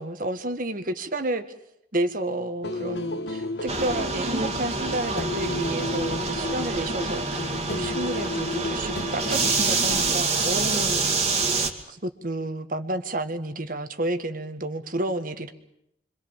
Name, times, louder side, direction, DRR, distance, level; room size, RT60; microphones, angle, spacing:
voice 1, 0.0-1.4 1.9-11.4 11.9-15.5, right 1 dB, 50° right, 9 dB, 1.8 m, -31 dB
sound 1, 2.6-10.2, left 2 dB, 70° left, 1.5 m, -32 dB
sound 2, 3.7-11.7, right 4 dB, 35° right, 2.5 m, -27 dB
26.5 x 24.5 x 7.4 m, 0.77 s
head